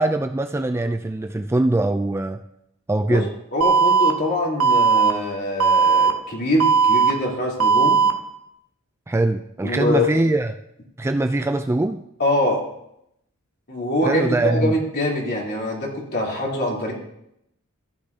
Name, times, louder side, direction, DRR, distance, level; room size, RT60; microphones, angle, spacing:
voice 1, 0.0-2.4 2.9-3.3 9.1-10.5 11.0-12.0 14.0-14.7, right 2 dB, 10° right, 7 dB, 0.3 m, -22 dB
voice 2, 3.1-8.0 9.6-10.1 12.2-12.6 13.7-16.9, left 1 dB, 50° left, -4 dB, 3.3 m, -24 dB
Alarm, 3.6-4.1 4.6-5.1 5.6-6.1 6.6-7.1 7.6-8.1, right 5 dB, 90° right, 1.0 m, -16 dB
15.0 x 9.8 x 2.8 m, 0.79 s
head